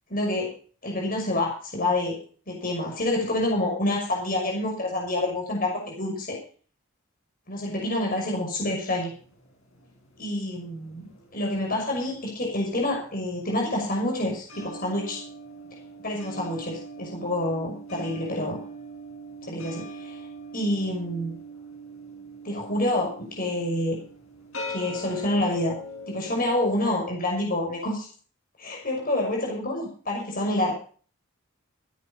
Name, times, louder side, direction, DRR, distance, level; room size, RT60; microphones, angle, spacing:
voice 1, 0.1-0.5 0.8-2.2 2.5-6.4 7.5-9.1 10.2-15.2 16.0-18.6 19.4-19.8 20.5-21.4 22.4-24.0 24.7-25.7 26.1-28.1 28.6-30.7, left 1 dB, 40° left, 0 dB, 6.1 m, -27 dB
sound 1, 9.1-11.6 11.9-26.7, equal, 75° left, 6.0 m, -41 dB
15.5 x 10.0 x 5.6 m, 0.41 s
head